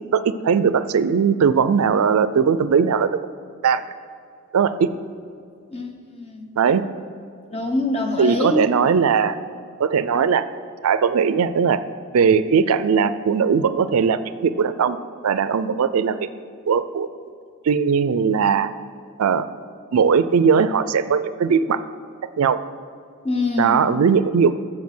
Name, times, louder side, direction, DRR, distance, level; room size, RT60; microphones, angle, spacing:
voice 1, 0.1-3.2 3.6-3.8 4.5-4.9 6.6-6.8 8.2-9.4 9.8-10.5 10.8-11.8 12.1-15.0 15.2-16.3 16.7-17.1 17.6-18.7 19.2-19.5 19.9-21.8 22.4-22.6 23.6-24.5, right 6 dB, 80° right, 14 dB, 0.4 m, -19 dB
voice 2, 5.7-6.5 7.5-8.7 23.2-23.8, left 2 dB, 30° left, 3 dB, 1.0 m, -24 dB
7.4 x 7.4 x 6.0 m, 2.3 s
head